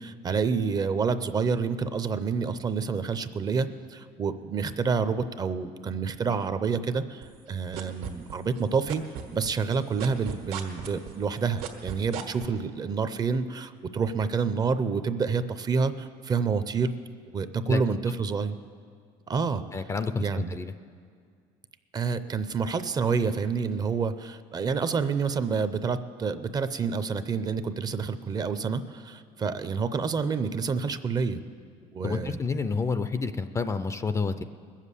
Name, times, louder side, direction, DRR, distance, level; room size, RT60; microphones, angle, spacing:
voice 1, 0.0-9.0 9.3-16.9 17.3-18.6 19.3-19.6 20.2-20.6 21.9-31.4 31.9-32.4, right 5 dB, 25° right, 11 dB, 0.5 m, -28 dB
sound 1, 7.2-8.6 8.9-12.4, right 9 dB, 80° right, 1.7 m, -36 dB
voice 2, 19.7-20.7 32.0-34.4, left 4 dB, 20° left, 11 dB, 0.4 m, -29 dB
20.5 x 7.4 x 8.3 m, 2.1 s
cardioid pair, 135°, 15 cm